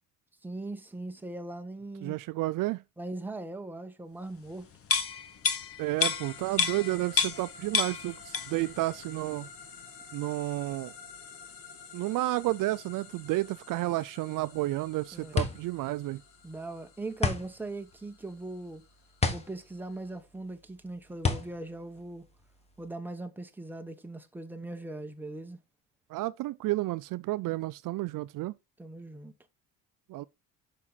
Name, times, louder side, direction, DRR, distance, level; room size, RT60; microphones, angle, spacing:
voice 1, 0.4-2.2 3.0-4.7 15.1-15.3 16.4-18.8 19.3-22.2 22.8-25.6 28.8-29.3, right 2 dB, 5° right, 0.9 m, -40 dB
voice 2, 2.0-2.8 5.8-9.5 10.1-10.9 11.9-16.2 26.1-28.5 30.1-30.2, right 17 dB, 65° right, 0.5 m, -31 dB
sound 1, 4.8-7.5 7.7-8.7 9.0-9.2, left 6 dB, 40° left, 1.1 m, -29 dB
sound 2, 6.0-20.2, left 5 dB, 75° left, 2.1 m, -50 dB
sound 3, 14.5-22.9, left 4 dB, 20° left, 1.3 m, -33 dB
7.4 x 5.4 x 3.9 m
cardioid pair, 120°, 35 cm